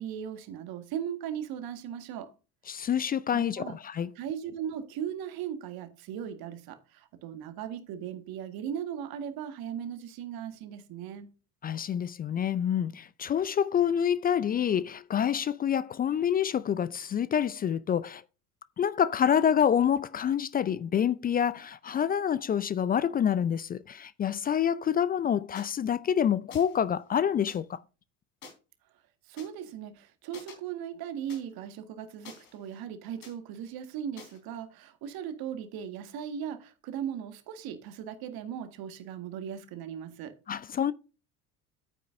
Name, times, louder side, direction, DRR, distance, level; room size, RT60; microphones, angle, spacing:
voice 1, 0.0-2.3 3.3-3.8 4.2-11.3 29.3-40.4, right 9 dB, 55° right, 1.8 m, -38 dB
voice 2, 2.7-4.1 11.6-18.2 18.8-27.8 40.5-40.9, left 8 dB, 20° left, 0.4 m, -27 dB
sound 1, 25.5-25.7 26.5-26.8 27.5-27.6 28.4-28.5 29.4-29.5 30.3-30.5 31.3-31.4 32.3-32.8 33.2-33.3 34.2-34.4, left 5 dB, 75° left, 3.6 m, -48 dB
10.5 x 9.3 x 2.7 m
figure-of-eight pair, 65°, 44 cm